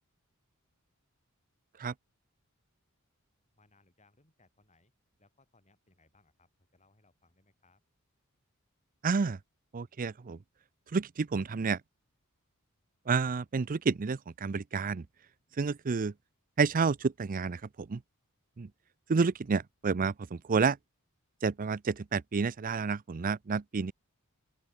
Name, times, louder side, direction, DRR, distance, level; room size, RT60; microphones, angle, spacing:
voice 1, 3.5-4.9 5.2-7.8, left 3 dB, 30° left, 7.0 m, -67 dB
voice 2, 9.0-9.4 9.7-10.4 10.9-11.8 13.1-15.0 15.6-16.1 16.6-18.0 18.6-18.7 19.1-20.8 21.4-23.9, right 5 dB, 40° right, 0.5 m, -30 dB
open air
head